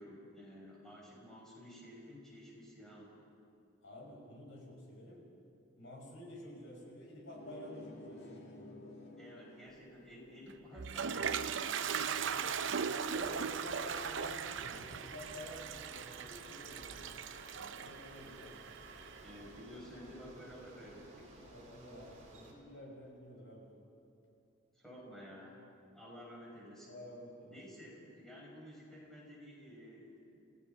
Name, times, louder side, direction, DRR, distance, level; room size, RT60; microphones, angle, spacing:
voice 1, 0.0-3.2 9.2-12.9 19.2-21.4 24.7-27.0 27.5-30.4, equal, ahead, -4 dB, 5.9 m, -52 dB
voice 2, 3.8-5.3 5.7-8.7 12.8-17.0 17.7-18.7 21.4-23.7 26.9-27.6, left 1 dB, 75° left, -2 dB, 6.5 m, -50 dB
sound 1, 7.3-12.5, left 2 dB, 55° left, 2.6 m, -54 dB
Toilet flush, 10.5-19.4, right 6 dB, 65° right, 0.6 m, -39 dB
Bicycle, 13.0-22.5, right 1 dB, 40° right, 4.0 m, -57 dB
29.5 x 16.5 x 5.7 m, 2.6 s
head